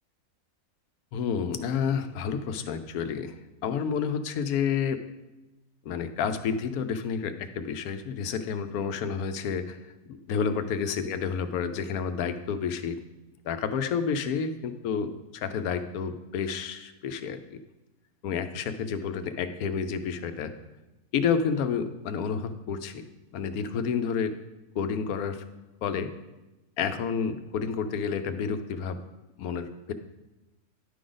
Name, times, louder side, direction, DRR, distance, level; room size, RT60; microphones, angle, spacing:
voice 1, 1.1-3.3 3.6-5.0 5.8-9.8 10.1-13.0 13.4-17.6 18.2-20.5 21.1-23.0 23.3-24.3 24.7-25.4 25.8-26.1 26.8-29.0 29.4-29.9, left 6 dB, 90° left, 9 dB, 1.1 m, -30 dB
11.0 x 4.9 x 3.9 m, 1.0 s
omnidirectional pair, 1.5 m